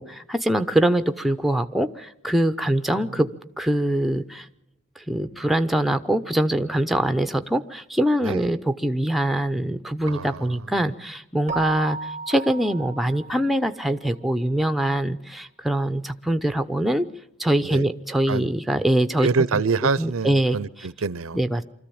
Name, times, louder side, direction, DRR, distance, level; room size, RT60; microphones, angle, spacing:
voice 1, 0.0-3.3 3.6-4.5 5.1-17.1 17.4-19.6 20.0-20.6 21.3-21.6, right 1 dB, ahead, 0.7 m, -23 dB
voice 2, 10.1-10.7 17.6-17.9 18.3-18.5 19.2-21.4, right 4 dB, 80° right, 0.7 m, -26 dB
Keyboard (musical), 11.5-13.9, right 4 dB, 35° right, 0.7 m, -34 dB
25.0 x 14.0 x 8.7 m
head